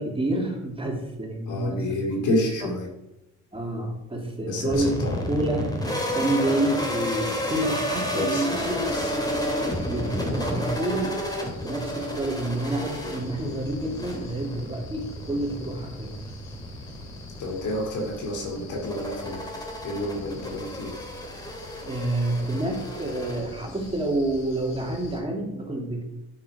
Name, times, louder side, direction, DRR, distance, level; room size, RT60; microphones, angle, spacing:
voice 1, 0.0-2.3 2.6-2.7 3.5-5.7 6.1-8.8 9.9-11.2 11.6-16.1 21.9-26.0, right 1 dB, 20° right, 0 dB, 2.7 m, -28 dB
voice 2, 1.5-2.9 4.4-5.2 7.9-9.1 17.4-19.4 19.8-20.9, left 1 dB, 80° left, 0 dB, 2.5 m, -30 dB
sound 1, 4.7-23.9, equal, 15° left, 2.7 m, -31 dB
sound 2, 8.5-25.2, left 3 dB, 65° left, 2.1 m, -45 dB
9.4 x 7.6 x 5.0 m, 0.91 s
cardioid pair, 90°, 30 cm